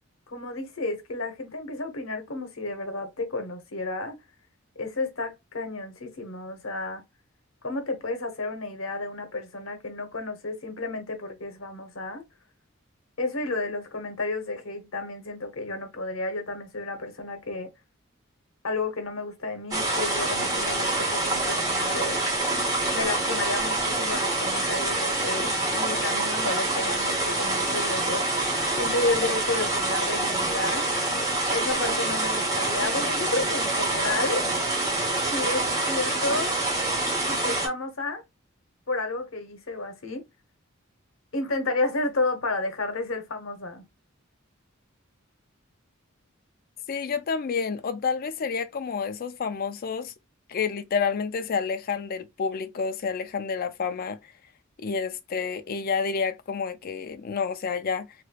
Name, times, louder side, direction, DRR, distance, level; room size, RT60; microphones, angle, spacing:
voice 1, 0.3-4.1 4.8-7.0 7.6-12.2 13.2-17.7 18.6-22.4 22.9-30.9 31.5-34.4 35.3-36.6 37.3-38.2 38.9-40.2 41.3-43.9, left 2 dB, 75° left, 1.0 m, -31 dB
sound 1, 19.7-37.7, right 2 dB, 20° right, 1.1 m, -26 dB
voice 2, 46.9-50.1 50.5-54.3 54.8-58.1, left 5 dB, 45° left, 0.4 m, -29 dB
3.1 x 3.0 x 2.3 m
head